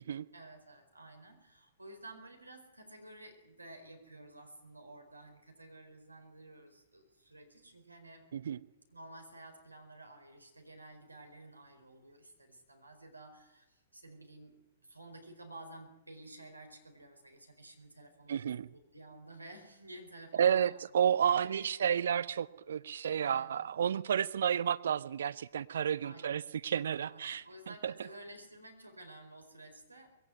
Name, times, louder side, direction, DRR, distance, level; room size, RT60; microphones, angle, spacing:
voice 1, 0.3-8.3 8.9-14.6 14.8-20.7 21.3-22.1 23.2-23.6 26.0-26.4 27.1-30.1, right 1 dB, 85° right, 4 dB, 4.4 m, -52 dB
voice 2, 18.3-18.7 20.4-27.9, right 8 dB, 60° right, 13 dB, 1.0 m, -31 dB
21.5 x 17.5 x 9.3 m, 0.91 s
figure-of-eight pair, 110°, 0 cm